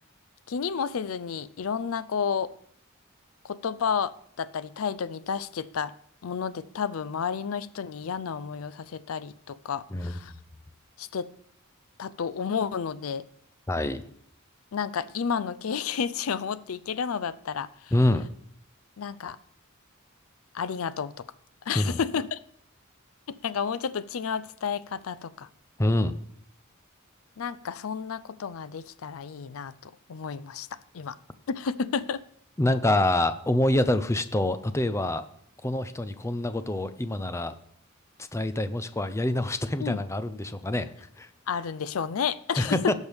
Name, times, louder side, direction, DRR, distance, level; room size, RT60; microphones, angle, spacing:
voice 1, 0.5-2.5 3.4-5.9 6.2-10.3 11.0-11.3 12.0-13.3 14.7-17.9 19.0-19.4 20.5-21.2 21.7-22.4 23.4-25.5 27.4-30.7 30.9-31.2 31.5-32.2 39.8-40.0 41.5-42.9, left 6 dB, 85° left, 15 dB, 0.5 m, -31 dB
voice 2, 13.7-14.0 17.9-18.3 21.7-22.0 25.8-26.1 32.6-35.3 35.6-37.5 38.3-40.9 41.2-41.3 42.6-42.9, left 1 dB, 15° left, 12 dB, 0.5 m, -26 dB
16.5 x 6.3 x 3.5 m, 0.67 s
head